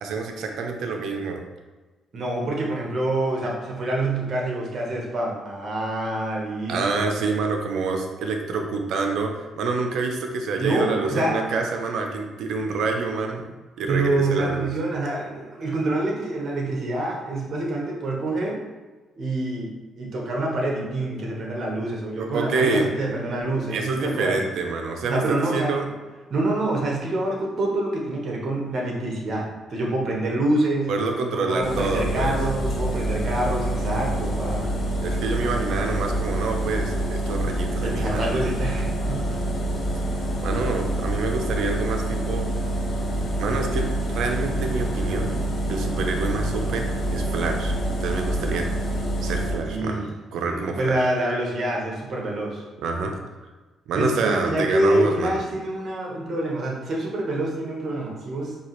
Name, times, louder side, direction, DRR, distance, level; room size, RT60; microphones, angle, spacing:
voice 1, 0.0-1.4 6.7-13.5 13.8-14.7 22.2-22.9 23.7-25.9 30.9-32.4 35.0-38.4 40.4-42.5 43.4-45.4 45.7-47.7 48.0-48.7 49.2-50.0 50.3-51.0 52.8-53.2 53.9-55.4, right 3 dB, 75° right, 3 dB, 0.6 m, -27 dB
voice 2, 2.1-7.1 10.5-11.4 13.8-18.6 19.2-24.4 25.1-25.7 26.3-30.9 31.3-34.7 37.8-39.4 49.7-50.1 50.5-52.6 53.9-58.6, right 1 dB, 55° right, -2 dB, 1.1 m, -26 dB
sound 1, 31.6-49.5, right 1 dB, 45° left, 1.2 m, -26 dB
4.7 x 2.8 x 3.0 m, 1.2 s
cardioid pair, 90°, 0 cm